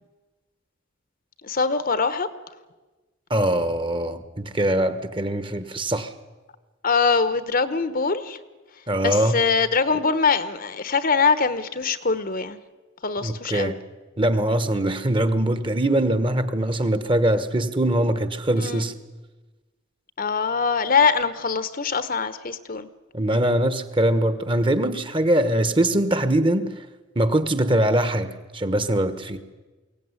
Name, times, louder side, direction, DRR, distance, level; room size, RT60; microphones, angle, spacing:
voice 1, 1.4-2.3 6.8-8.4 9.0-12.6 13.0-13.8 18.6-18.9 20.2-22.9, left 5 dB, 45° left, 13 dB, 1.1 m, -23 dB
voice 2, 3.3-6.1 8.9-9.4 13.2-13.8 14.2-18.9 23.1-26.8 27.1-29.4, right 1 dB, 25° right, 11 dB, 1.3 m, -22 dB
22.5 x 17.5 x 9.7 m, 1.2 s
head